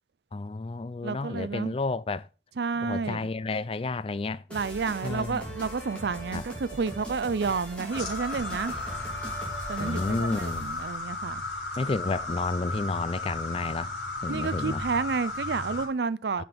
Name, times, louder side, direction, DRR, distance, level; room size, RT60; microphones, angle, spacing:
voice 1, 0.3-2.3 2.8-4.4 5.0-5.4 6.3-6.4 9.8-10.7 11.8-13.9 14.2-14.8 16.4-16.5, left 3 dB, 30° left, 0.4 m, -31 dB
voice 2, 1.0-1.8 2.6-3.3 4.5-8.7 9.7-11.4 14.3-16.4, right 5 dB, 60° right, 0.5 m, -30 dB
sound 1, 4.5-10.8, right 1 dB, 5° left, 3.0 m, -40 dB
sound 2, 7.9-15.9, left 2 dB, 75° left, 3.9 m, -35 dB
9.3 x 6.0 x 5.2 m
head